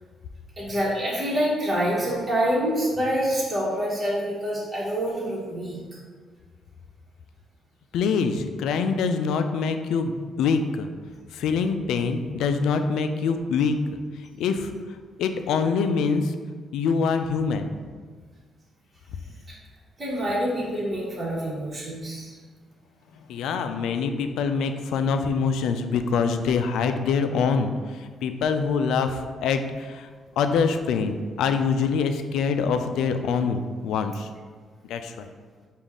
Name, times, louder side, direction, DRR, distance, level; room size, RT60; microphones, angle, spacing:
voice 1, 0.6-5.8 19.5-19.6 20.0-22.3, equal, 30° right, -7 dB, 1.2 m, -26 dB
voice 2, 7.9-10.9 11.3-13.8 14.4-14.7 15.2-16.3 16.7-17.7 23.3-27.7 28.0-30.1 30.4-34.3 34.9-35.3, left 5 dB, 85° left, 7 dB, 0.3 m, -24 dB
5.2 x 2.4 x 3.6 m, 1.5 s
cardioid pair, 90°, 0 cm